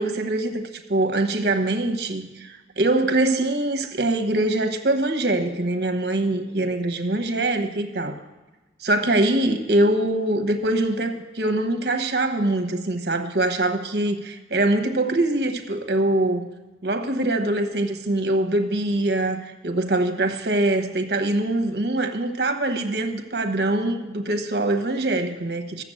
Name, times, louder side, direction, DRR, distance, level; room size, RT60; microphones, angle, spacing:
voice 1, 0.0-8.2 8.8-16.5 16.8-25.8, right 2 dB, 65° right, 8 dB, 1.0 m, -23 dB
13.0 x 6.9 x 7.7 m, 1.2 s
head